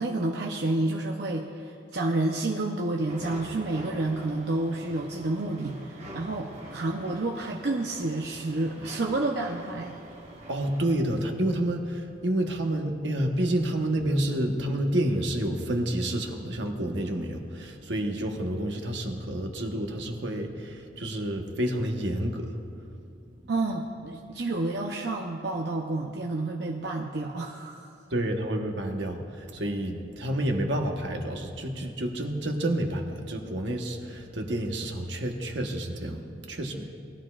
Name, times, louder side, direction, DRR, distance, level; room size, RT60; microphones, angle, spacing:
voice 1, 0.0-9.9 23.5-27.9, right 2 dB, 65° right, 0 dB, 0.7 m, -29 dB
sound 1, 3.1-10.9, right 1 dB, 35° right, 1.3 m, -45 dB
voice 2, 10.5-22.5 28.1-36.9, right 1 dB, 85° right, 3 dB, 1.2 m, -29 dB
20.0 x 13.0 x 2.4 m, 2.5 s
head